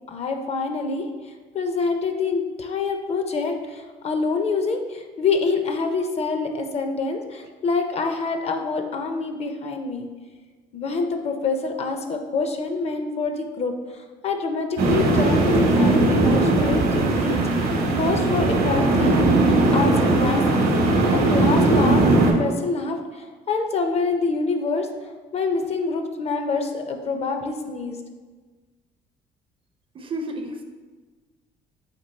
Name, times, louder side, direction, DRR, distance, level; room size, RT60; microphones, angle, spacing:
voice 1, 0.1-1.1 1.5-10.1 10.7-17.7 18.0-20.7 21.1-24.9 25.3-28.0, left 4 dB, 40° left, 5 dB, 0.4 m, -26 dB
sound 1, 14.8-22.3, right 2 dB, 65° right, 0.8 m, -19 dB
voice 2, 29.9-30.6, right 1 dB, 30° right, 5 dB, 0.4 m, -31 dB
4.4 x 2.6 x 4.1 m, 1.4 s
cardioid pair, 110°, 17 cm